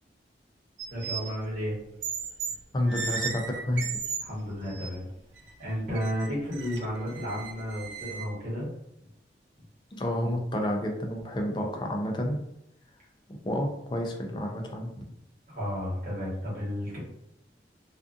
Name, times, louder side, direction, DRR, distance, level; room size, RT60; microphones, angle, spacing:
sound 1, 0.8-1.3 2.0-2.6 2.9-4.2 4.7-4.9 5.4-5.5 5.9-8.2, right 5 dB, 75° right, 0.4 m, -35 dB
voice 1, 0.9-1.7 4.2-5.1 5.6-8.7 15.5-17.0, equal, 45° right, -7 dB, 1.2 m, -32 dB
voice 2, 2.7-3.9 9.9-12.4 13.3-14.9, left 1 dB, 25° left, 2 dB, 0.3 m, -30 dB
2.4 x 2.4 x 2.4 m, 0.79 s
head